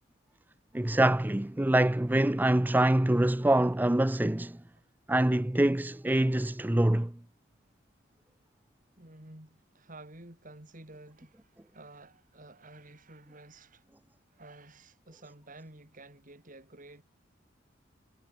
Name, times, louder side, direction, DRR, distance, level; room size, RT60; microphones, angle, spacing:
voice 1, 0.7-4.6 5.1-7.1, right 1 dB, 10° right, 0.5 m, -25 dB
voice 2, 9.0-13.9 14.3-17.0, right 2 dB, 45° right, 4.2 m, -51 dB
head